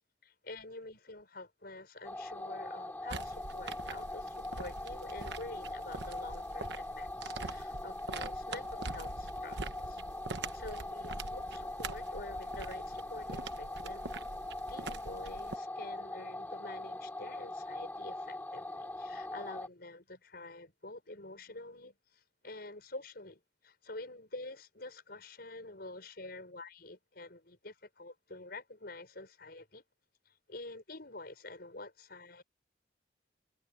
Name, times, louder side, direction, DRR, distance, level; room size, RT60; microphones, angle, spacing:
voice 1, 0.2-10.0 10.5-14.1 14.7-29.8 30.3-32.4, left 2 dB, 60° left, 6.0 m, -48 dB
sound 1, 2.0-19.7, left 2 dB, 10° left, 2.4 m, -42 dB
sound 2, 3.1-15.6, right 3 dB, 70° right, 1.2 m, -44 dB
head